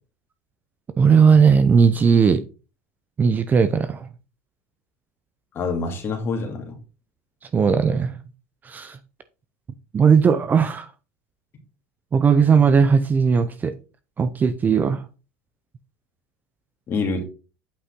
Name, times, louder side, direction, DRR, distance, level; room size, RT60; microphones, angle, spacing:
voice 1, 1.0-2.4 3.2-4.1 7.5-8.1 8.6-9.0 9.9-10.9 12.1-13.7 14.2-15.0, right 6 dB, 25° right, 0.6 m, -17 dB
voice 2, 5.5-6.8 16.9-17.2, left 4 dB, 35° left, 2.4 m, -26 dB
8.5 x 5.6 x 3.7 m
supercardioid pair, 120°, 7 cm